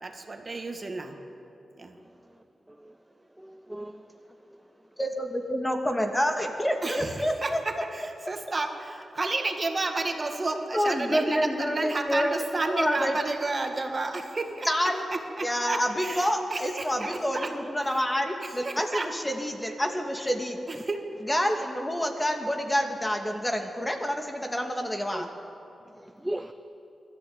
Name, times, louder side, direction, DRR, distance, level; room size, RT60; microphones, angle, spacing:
voice 1, 0.0-1.1 1.8-1.9 6.8-14.7 15.4-17.5 18.4-19.1 20.8-21.0, right 3 dB, 40° right, 4 dB, 2.1 m, -31 dB
voice 2, 3.4-4.1 4.5-4.6 25.1-25.3 25.9-26.5, right 1 dB, 10° right, 7 dB, 0.8 m, -37 dB
voice 3, 5.0-7.6 10.7-12.4 12.6-13.4 14.6-15.1 15.4-20.6 21.2-25.3, equal, 15° left, 4 dB, 2.4 m, -28 dB
21.0 x 13.5 x 9.0 m, 2.8 s
cardioid pair, 65°, 0 cm